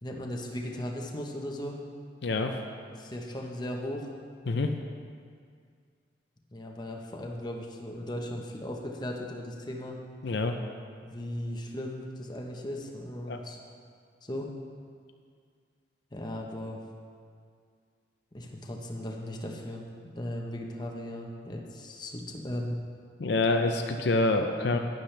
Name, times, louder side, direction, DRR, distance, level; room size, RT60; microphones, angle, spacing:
voice 1, 0.0-1.8 2.9-4.1 6.5-10.0 11.0-13.6 14.2-14.5 16.1-16.8 18.3-19.9 20.2-22.8, left 1 dB, 25° left, 0 dB, 1.0 m, -37 dB
voice 2, 2.2-2.6 4.5-4.7 10.2-10.6 13.3-13.4 23.2-24.8, left 2 dB, 70° left, 5 dB, 0.6 m, -26 dB
11.5 x 10.5 x 3.3 m, 2.1 s
head